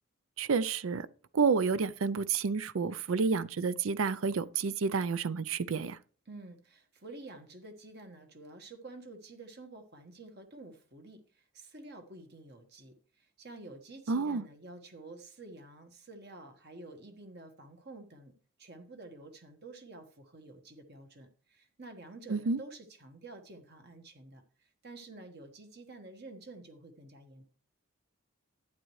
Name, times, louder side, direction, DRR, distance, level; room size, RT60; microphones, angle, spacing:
voice 1, 0.4-1.1 1.3-6.0 14.1-14.4 22.3-22.6, right 5 dB, 70° right, 0.5 m, -30 dB
voice 2, 6.3-18.3 18.6-27.4, right 2 dB, 50° right, 1.4 m, -50 dB
11.5 x 8.9 x 3.2 m
head